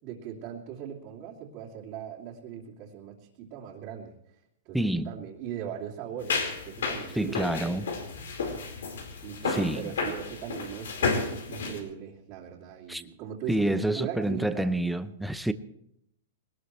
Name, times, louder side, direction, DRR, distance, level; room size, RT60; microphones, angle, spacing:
voice 1, 0.0-4.1 4.6-7.4 7.6-7.9 9.2-14.7, right 9 dB, 35° right, 2.6 m, -39 dB
voice 2, 4.7-5.1 7.1-7.9 9.5-9.8 12.9-13.0 13.5-15.5, right 1 dB, ahead, 0.6 m, -28 dB
sound 1, 6.2-11.8, left 4 dB, 85° left, 4.5 m, -32 dB
20.5 x 19.0 x 3.2 m
hypercardioid pair, 160°, 0 cm